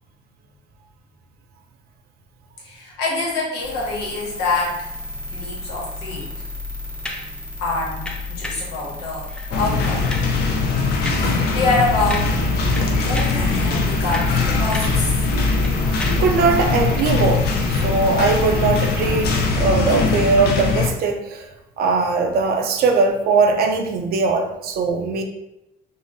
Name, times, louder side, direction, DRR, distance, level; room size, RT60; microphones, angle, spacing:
voice 1, 2.6-4.9 5.3-6.5 7.6-9.3 9.6-10.0 11.1-12.4 12.9-15.1, left 3 dB, 85° left, -3 dB, 1.0 m, -25 dB
sound 1, 3.6-19.5, left 2 dB, 30° left, 0.8 m, -33 dB
sound 2, 7.0-7.3 8.1-8.7 9.3-9.5 9.8-10.4 11.1-11.4 11.7-11.8 12.1-12.5 12.7-13.5 13.9-15.1 15.3-16.3 16.9-17.1, left 1 dB, 5° left, 0.4 m, -33 dB
sound 3, 9.5-20.9, left 3 dB, 70° left, 0.6 m, -21 dB
voice 2, 16.1-17.5 17.8-21.5 21.8-25.2, right 4 dB, 65° right, 4 dB, 0.5 m, -20 dB
3.6 x 2.0 x 2.6 m, 0.91 s
cardioid pair, 110°, 17 cm